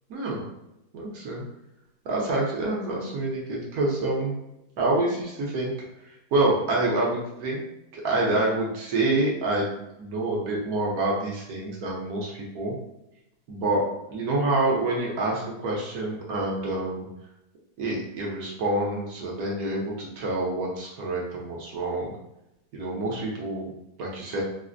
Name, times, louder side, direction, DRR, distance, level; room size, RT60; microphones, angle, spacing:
voice 1, 0.1-0.4 0.9-1.4 2.0-4.3 4.8-5.7 6.0-7.6 7.9-9.7 10.0-12.7 13.5-13.8 14.1-17.1 17.8-22.1 22.7-23.7 24.0-24.4, right 2 dB, 60° right, -3 dB, 1.2 m, -27 dB
4.0 x 2.0 x 2.5 m, 0.87 s
omnidirectional pair, 2.0 m